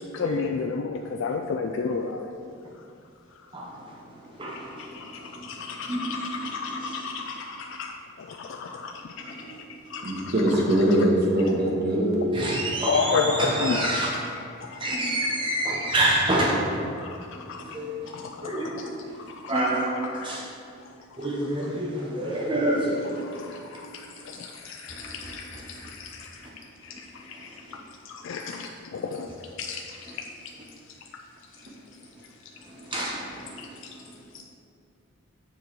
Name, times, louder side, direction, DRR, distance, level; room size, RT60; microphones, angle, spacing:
voice 1, 0.1-2.4 4.5-10.3 12.8-14.3 14.6-15.4 17.0-17.8 18.0-20.4 21.2-21.3 23.1-26.5 26.8-27.8 28.0-30.1 31.6-31.7 33.6-33.9 34.3-34.4, left 4 dB, 60° left, 3 dB, 0.3 m, -33 dB
voice 2, 4.2-5.5 5.9-6.2 6.7-7.0 9.2-9.6 10.0-10.1 11.4-11.5 12.3-14.1 14.8-16.6 17.3-18.1 18.4-20.0 20.2-20.4 21.2-23.2 24.9-25.4 32.7-33.7, right 1 dB, 25° right, -3 dB, 0.8 m, -28 dB
voice 3, 10.0-12.4, right 1 dB, 50° right, -3 dB, 1.3 m, -22 dB
7.3 x 4.7 x 4.6 m, 2.5 s
head